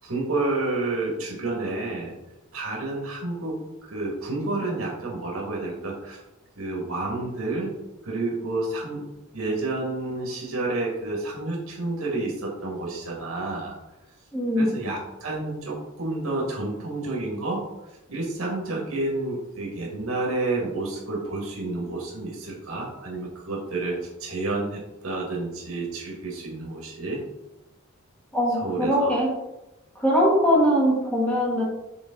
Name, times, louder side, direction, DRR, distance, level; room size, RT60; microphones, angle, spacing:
voice 1, 0.0-2.1 2.5-6.2 6.6-7.7 8.0-9.1 9.3-13.8 14.6-17.6 18.1-27.2 28.5-29.1, right 2 dB, 75° right, -2 dB, 1.9 m, -30 dB
voice 2, 14.3-14.8 28.3-29.3 29.9-31.6, equal, 5° left, -4 dB, 1.6 m, -21 dB
7.1 x 3.9 x 3.8 m, 0.96 s
head